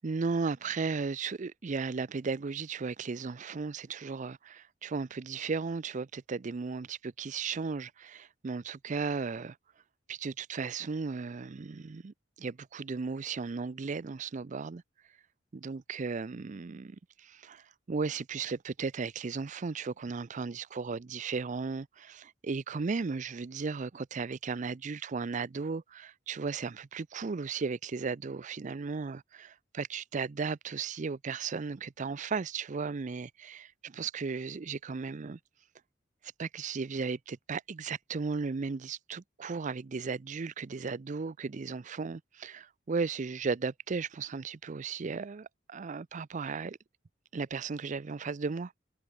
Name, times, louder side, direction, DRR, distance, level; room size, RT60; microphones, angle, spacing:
voice 1, 0.0-9.6 10.1-14.8 15.5-35.4 36.4-46.8 47.3-48.7, right 4 dB, 40° right, 0.5 m, -35 dB
head